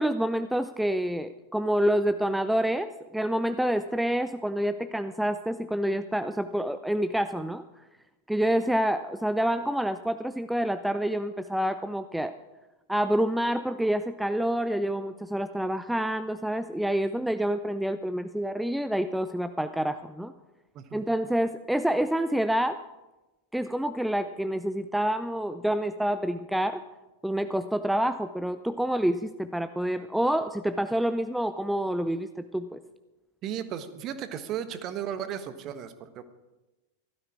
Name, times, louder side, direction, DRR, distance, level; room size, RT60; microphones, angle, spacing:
voice 1, 0.0-7.6 8.3-12.3 12.9-20.3 20.9-22.8 23.5-26.8 27.2-32.8, right 1 dB, ahead, 11 dB, 0.5 m, -27 dB
voice 2, 33.4-36.2, right 9 dB, 35° right, 10 dB, 1.3 m, -35 dB
15.5 x 13.0 x 4.8 m, 1.1 s
figure-of-eight pair, 90°, 0 cm